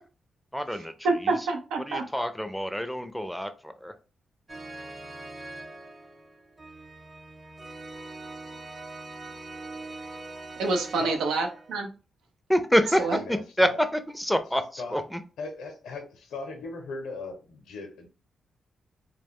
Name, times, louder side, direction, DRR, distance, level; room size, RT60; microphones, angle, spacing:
voice 1, 0.5-0.9 1.2-1.4 1.9-3.9 12.5-15.2, equal, ahead, 0.5 m, -27 dB
voice 2, 1.0-2.0 10.6-11.9 13.0-13.2, right 3 dB, 85° right, 0.5 m, -27 dB
sound 1, 4.5-11.7, right 2 dB, 25° right, 0.8 m, -42 dB
voice 3, 12.9-13.8 14.8-15.0 15.4-18.1, left 3 dB, 85° left, 0.6 m, -38 dB
2.3 x 2.2 x 3.5 m
supercardioid pair, 50°, 0 cm